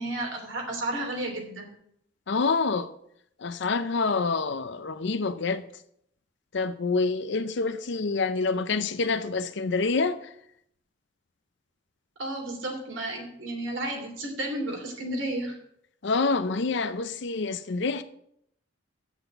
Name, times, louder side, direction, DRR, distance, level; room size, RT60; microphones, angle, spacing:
voice 1, 0.0-1.7 12.2-15.6, right 1 dB, 75° right, 3.0 m, -32 dB
voice 2, 2.3-2.9 3.4-5.6 6.5-10.3 16.0-18.0, left 4 dB, 65° left, 0.6 m, -27 dB
8.7 x 6.1 x 7.8 m
head